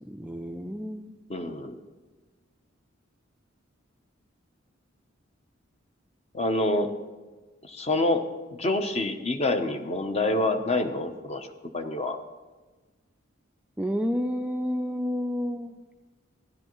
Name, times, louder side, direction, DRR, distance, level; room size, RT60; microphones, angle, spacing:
voice 1, 0.1-1.2 13.8-15.7, equal, 5° right, 4 dB, 0.3 m, -30 dB
voice 2, 1.3-1.8 6.3-6.9 7.6-8.2 8.6-11.5 11.7-12.2, left 2 dB, 30° left, 7 dB, 0.7 m, -27 dB
15.0 x 10.5 x 3.0 m, 1.3 s
head